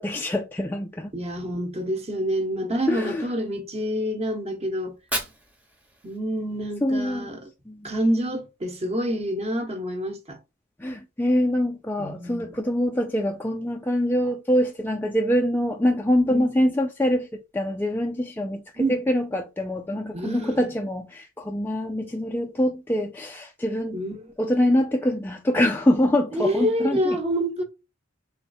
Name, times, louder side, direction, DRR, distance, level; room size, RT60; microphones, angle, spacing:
voice 1, 0.0-1.1 2.9-3.3 6.8-7.3 7.7-7.9 10.8-24.0 24.4-27.2, left 1 dB, 10° left, 0.3 m, -24 dB
voice 2, 1.1-4.9 6.0-7.5 7.8-10.4 12.0-12.6 16.3-16.5 18.8-19.0 20.1-20.6 23.9-24.3 26.3-27.6, equal, 30° right, 1.0 m, -27 dB
Fire, 4.8-6.8, right 1 dB, 5° right, 0.9 m, -35 dB
4.4 x 3.1 x 2.6 m
head